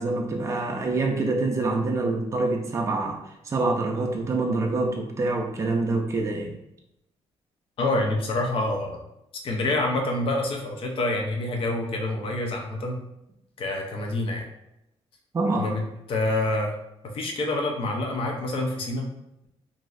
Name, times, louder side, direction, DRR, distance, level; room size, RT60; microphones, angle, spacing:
voice 1, 0.0-6.5 15.3-15.7, right 3 dB, 25° right, 1 dB, 0.4 m, -26 dB
voice 2, 7.8-9.0 9.4-13.0 13.6-14.5 15.6-15.8 16.1-16.7 17.1-19.1, left 2 dB, 55° left, 1 dB, 0.6 m, -27 dB
3.0 x 2.6 x 2.4 m, 0.85 s
cardioid pair, 140°, 11 cm